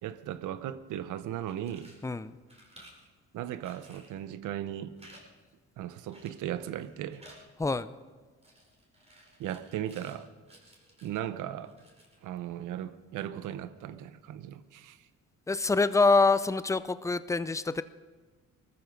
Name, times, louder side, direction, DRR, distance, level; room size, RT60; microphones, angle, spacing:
voice 1, 0.0-1.9 3.3-4.9 5.8-7.2 9.4-10.3 11.0-11.7 12.2-15.0, right 11 dB, 85° right, 13 dB, 0.9 m, -37 dB
sound 1, 1.5-2.1 2.5-3.1 3.6-4.2 5.0-5.2 5.5-5.6 6.1-6.5 6.8-7.4 8.4-10.2 10.5-11.2 11.6-12.2, right 1 dB, 20° right, 4.7 m, -56 dB
voice 2, 2.0-2.4 7.6-7.9 15.5-17.8, left 3 dB, 10° left, 14 dB, 0.6 m, -25 dB
19.5 x 14.0 x 5.2 m, 1.3 s
cardioid pair, 90°, 30 cm